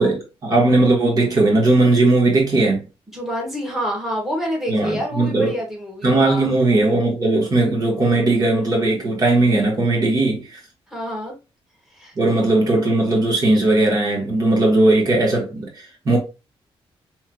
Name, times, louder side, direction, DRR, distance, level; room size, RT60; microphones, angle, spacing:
voice 1, 0.0-2.8 4.7-5.5 6.0-10.6 12.2-16.2, right 2 dB, 40° right, 1.2 m, -18 dB
voice 2, 3.1-6.5 10.9-11.3 11.9-12.4, equal, 5° right, 1.5 m, -28 dB
5.4 x 3.1 x 2.2 m
wide cardioid pair, 155°, 10 cm